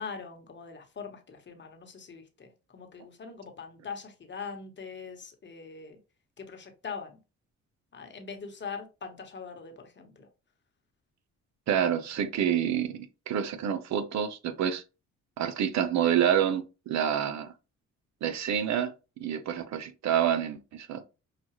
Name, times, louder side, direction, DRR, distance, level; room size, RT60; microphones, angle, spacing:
voice 1, 0.0-6.0 6.4-7.2 7.9-10.3 11.9-12.0, left 5 dB, 35° left, 1.1 m, -42 dB
voice 2, 11.7-14.8 15.4-17.5 18.2-18.9 19.2-21.0, right 9 dB, 65° right, 0.7 m, -28 dB
5.7 x 2.4 x 3.0 m
cardioid pair, 90°, 30 cm